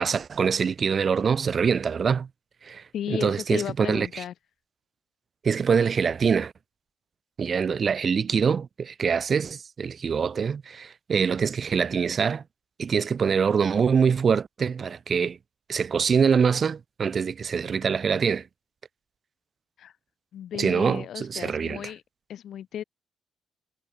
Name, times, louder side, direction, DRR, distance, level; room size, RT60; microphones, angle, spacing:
voice 1, 0.0-2.3 2.6-4.2 5.4-6.5 7.4-12.4 12.8-15.4 15.7-18.4 20.5-21.8, right 6 dB, 45° right, 2.2 m, -24 dB
voice 2, 2.9-4.3 19.8-19.9 20.3-22.0 22.3-22.8, left 10 dB, 70° left, 5.5 m, -34 dB
cardioid pair, 90°, 0 cm